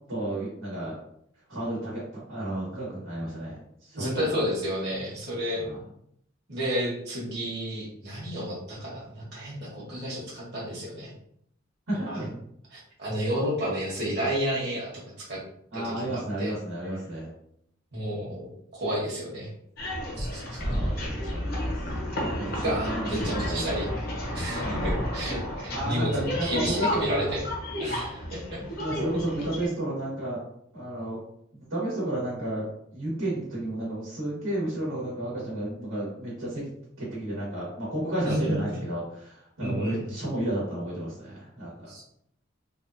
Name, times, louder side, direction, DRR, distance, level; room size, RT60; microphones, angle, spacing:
voice 1, 0.1-1.0 1.5-4.4 5.6-5.8 11.9-12.3 15.7-17.3 20.6-21.8 22.4-23.9 24.6-24.9 25.7-27.3 28.8-30.4 30.7-31.2 31.6-36.7 37.0-41.9, right 1 dB, 85° right, -6 dB, 1.5 m, -32 dB
voice 2, 3.9-5.6 6.5-11.1 11.9-12.2 12.7-14.9 15.2-15.4 15.7-16.5 17.9-18.5 18.8-19.5 20.2-20.8 22.6-23.9 24.3-27.4 27.8-28.6 38.2-38.6 39.6-40.1 41.9-42.0, equal, 55° right, -6 dB, 1.3 m, -31 dB
sound 1, 19.8-29.7, equal, 50° left, 0.8 m, -31 dB
3.4 x 2.3 x 2.7 m, 0.71 s
head